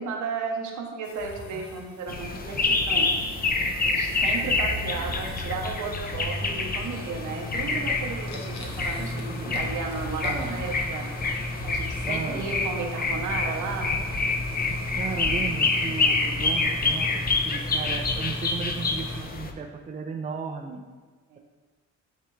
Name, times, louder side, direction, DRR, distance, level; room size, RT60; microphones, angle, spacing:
voice 1, 0.0-3.1 3.8-11.1 11.6-13.9 21.3-21.4, right 5 dB, 75° right, 1 dB, 1.1 m, -34 dB
sound 1, 1.0-19.2, left 1 dB, 65° left, 1.0 m, -37 dB
sound 2, 2.1-19.5, left 3 dB, 30° left, 0.6 m, -27 dB
voice 2, 4.9-5.3 8.6-8.7 9.0-9.7 10.2-10.6 12.1-12.5 15.0-20.8, right 5 dB, 25° right, 2 dB, 0.5 m, -35 dB
9.0 x 3.4 x 3.2 m, 1.4 s
cardioid pair, 90°, 30 cm